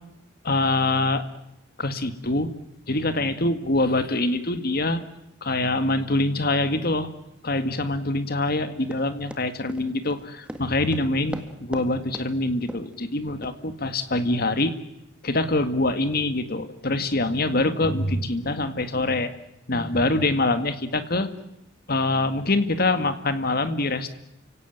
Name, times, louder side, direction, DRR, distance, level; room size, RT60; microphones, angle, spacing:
voice 1, 0.4-1.2 1.8-2.5 2.9-5.0 5.4-7.1 7.4-14.7 15.2-19.3 19.7-21.3 21.9-24.1, left 2 dB, 50° left, 10 dB, 2.0 m, -24 dB
Run, 8.9-11.9 12.1-12.3 12.7-12.9 13.4-13.6 14.1-14.2, equal, 5° right, 1.8 m, -37 dB
30.0 x 17.5 x 9.3 m, 0.86 s
head